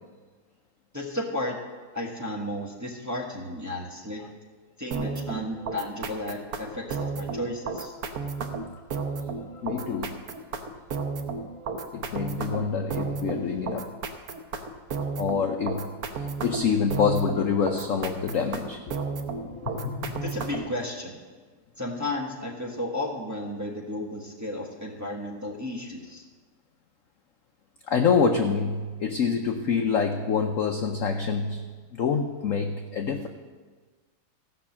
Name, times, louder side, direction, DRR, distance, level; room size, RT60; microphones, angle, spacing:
voice 1, 0.9-1.6 1.9-4.2 4.8-7.9 20.2-21.2 21.8-26.2, left 1 dB, 10° right, -2 dB, 1.1 m, -33 dB
sound 1, 4.9-20.8, right 4 dB, 55° right, 1.2 m, -33 dB
voice 2, 9.6-10.1 11.9-13.9 15.2-15.8 16.4-18.8 19.4-20.3 27.9-31.6 31.9-33.3, left 6 dB, 65° left, 4 dB, 0.8 m, -26 dB
15.5 x 5.9 x 7.3 m, 1.4 s
omnidirectional pair, 2.1 m